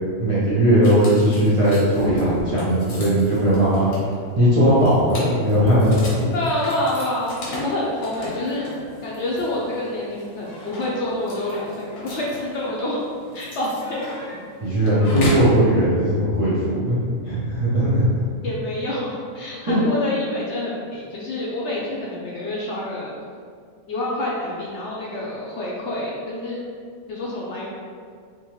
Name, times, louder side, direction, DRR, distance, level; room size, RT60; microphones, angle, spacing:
voice 1, 0.2-3.9 4.4-6.3 14.6-17.0 17.2-18.1 19.6-19.8, equal, 35° right, -11 dB, 0.6 m, -18 dB
sound 1, 0.8-15.6, left 1 dB, 85° left, 1.3 m, -35 dB
voice 2, 6.3-7.3 7.6-8.7 9.0-13.0 13.3-14.4 18.4-23.1 23.9-26.6 27.1-27.7, left 1 dB, 65° left, -4 dB, 0.9 m, -27 dB
3.6 x 2.9 x 3.0 m, 2.1 s
omnidirectional pair, 1.4 m